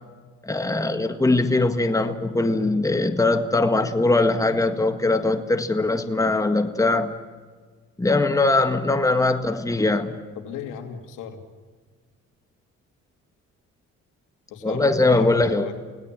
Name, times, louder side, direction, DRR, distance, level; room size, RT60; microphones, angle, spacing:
voice 1, 0.4-7.1 8.0-10.1 14.6-15.7, left 2 dB, 10° left, 7 dB, 1.8 m, -21 dB
voice 2, 10.4-11.4 14.5-15.7, left 8 dB, 85° left, 5 dB, 2.8 m, -34 dB
28.5 x 18.5 x 7.6 m, 1.5 s
cardioid pair, 90°, 30 cm